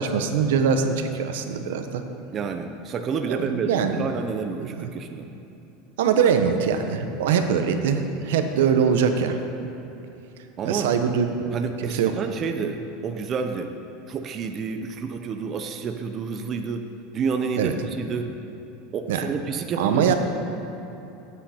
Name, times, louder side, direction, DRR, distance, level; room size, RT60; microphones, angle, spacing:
voice 1, 0.0-2.0 3.3-4.1 4.8-4.9 6.0-9.4 10.6-11.3 11.8-12.1 17.6-17.7 19.1-19.3 19.8-20.1, right 7 dB, 80° right, 7 dB, 0.9 m, -22 dB
voice 2, 2.3-5.2 10.6-10.9 11.5-13.7 14.1-16.9 17.1-18.3 18.9-20.1, right 5 dB, 30° right, 6 dB, 0.6 m, -29 dB
14.5 x 8.8 x 4.4 m, 3.0 s
supercardioid pair, 155°, 0 cm